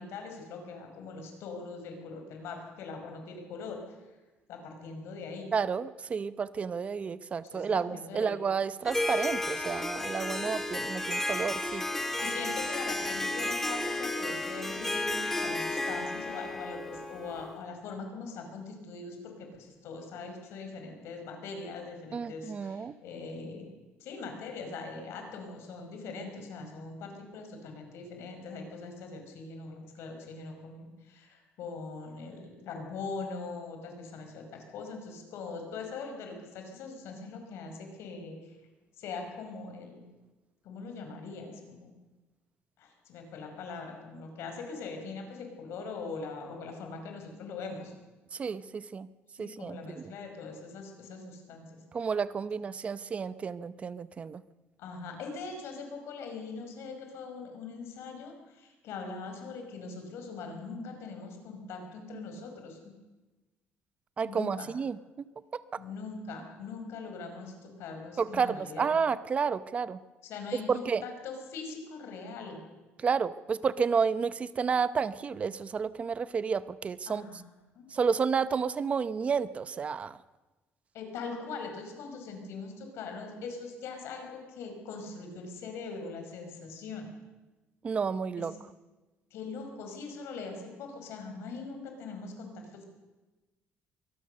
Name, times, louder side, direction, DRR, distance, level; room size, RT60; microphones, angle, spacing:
voice 1, 0.0-4.0 4.5-5.5 7.4-8.4 10.3-10.6 12.2-23.7 24.0-38.6 39.0-40.0 40.6-41.9 42.8-47.9 49.4-51.8 54.8-63.0 64.2-64.7 65.8-68.9 70.2-72.6 77.1-77.4 77.8-77.9 80.9-87.1 88.4-88.5 89.3-92.9, left 4 dB, 75° left, 4 dB, 5.2 m, -42 dB
voice 2, 5.5-11.8 22.1-22.9 48.3-49.1 49.4-50.1 51.9-54.4 64.2-65.0 65.5-65.6 68.2-70.0 70.7-71.0 73.0-77.3 77.9-80.2 87.8-88.5, right 6 dB, 30° right, 15 dB, 0.7 m, -31 dB
Harp, 8.9-17.6, left 2 dB, 10° left, 1.7 m, -33 dB
23.5 x 18.0 x 6.7 m, 1.1 s
cardioid pair, 150°, 4 cm